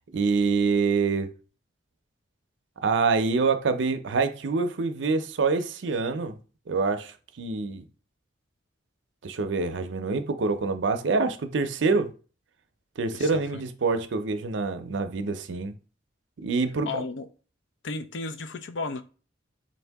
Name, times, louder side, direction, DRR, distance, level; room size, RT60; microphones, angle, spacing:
voice 1, 0.1-1.3 2.8-6.4 6.7-7.8 9.2-12.1 13.0-15.7 16.4-17.0, right 4 dB, 70° right, 0.5 m, -26 dB
voice 2, 13.1-13.6 16.9-17.3 17.8-19.0, left 3 dB, 70° left, 0.5 m, -34 dB
4.1 x 2.7 x 3.4 m
head